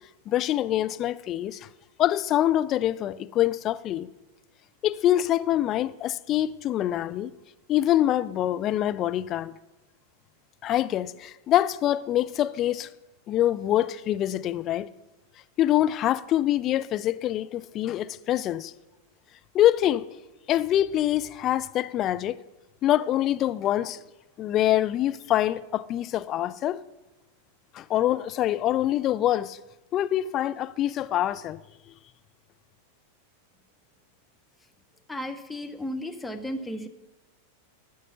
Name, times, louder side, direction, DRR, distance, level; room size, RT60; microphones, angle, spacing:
voice 1, 0.3-1.7 2.0-4.1 4.8-7.3 7.7-9.5 10.6-12.9 13.3-14.9 15.6-18.7 19.5-20.0 20.5-22.4 22.8-24.0 24.4-26.8 27.7-29.6 29.9-31.6, left 12 dB, 35° left, 0.4 m, -25 dB
voice 2, 35.1-36.9, left 1 dB, 5° left, 0.8 m, -34 dB
13.0 x 6.2 x 5.6 m
figure-of-eight pair, 90°, 0 cm